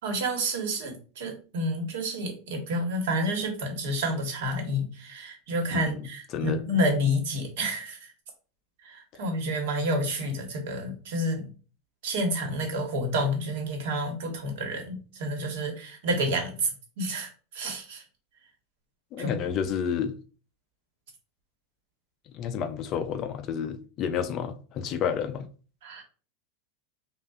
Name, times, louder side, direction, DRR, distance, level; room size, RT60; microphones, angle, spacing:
voice 1, 0.0-8.0 8.8-11.5 12.0-16.7 17.0-18.0 19.2-19.4 25.8-26.0, equal, 65° right, 1.3 m, -29 dB
voice 2, 5.7-6.0 6.3-6.6 19.1-20.1 22.3-25.5, left 8 dB, 30° left, 0.3 m, -30 dB
5.2 x 2.4 x 2.4 m
supercardioid pair, 170°, 0 cm